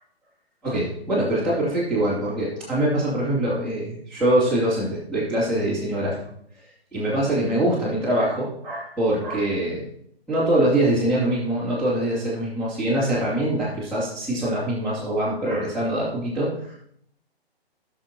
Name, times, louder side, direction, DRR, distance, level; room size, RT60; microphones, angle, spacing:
voice 1, 0.6-6.2 6.9-9.9 10.3-16.7, right 1 dB, 5° left, -12 dB, 2.9 m, -23 dB
18.0 x 6.3 x 3.0 m, 0.69 s
figure-of-eight pair, 130°, 31 cm